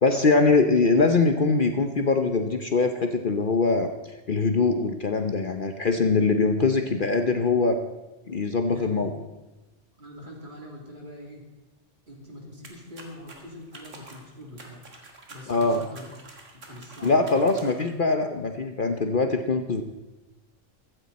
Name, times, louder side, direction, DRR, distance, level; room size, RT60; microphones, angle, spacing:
voice 1, 0.0-3.9 4.3-7.8 8.3-9.1 15.5-15.8 17.0-19.8, left 3 dB, 45° left, 6 dB, 1.0 m, -22 dB
voice 2, 8.7-9.1 10.0-11.4 12.1-14.9 15.3-16.0 16.5-17.5, left 1 dB, 40° right, -1 dB, 3.3 m, -43 dB
sound 1, 12.6-18.0, right 2 dB, 75° right, 2.3 m, -48 dB
16.0 x 13.5 x 4.2 m, 1.1 s
omnidirectional pair, 1.3 m